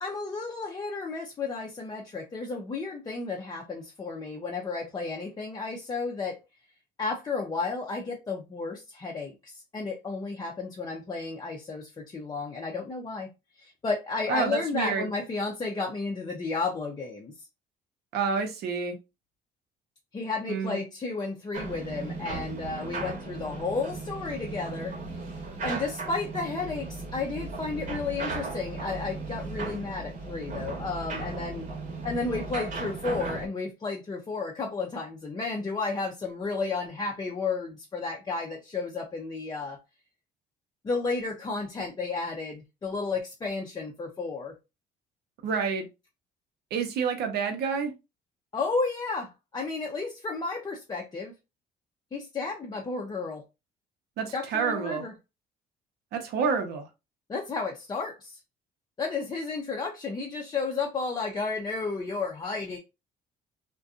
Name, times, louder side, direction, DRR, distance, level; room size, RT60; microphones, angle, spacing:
voice 1, 0.0-6.4 7.0-13.3 13.6-17.3 20.1-25.2 25.6-31.7 32.0-39.8 40.8-44.5 48.5-51.3 52.1-53.4 54.3-55.1 57.3-58.4 59.0-62.8, left 4 dB, 25° left, 0.5 m, -32 dB
voice 2, 14.3-15.1 18.1-19.0 20.5-20.8 45.4-45.9 46.7-47.9 54.2-55.0 56.1-56.9, right 5 dB, 70° right, 0.7 m, -28 dB
sound 1, 21.5-33.5, right 3 dB, 50° right, 1.0 m, -36 dB
2.5 x 2.2 x 2.4 m
cardioid pair, 110°, 17 cm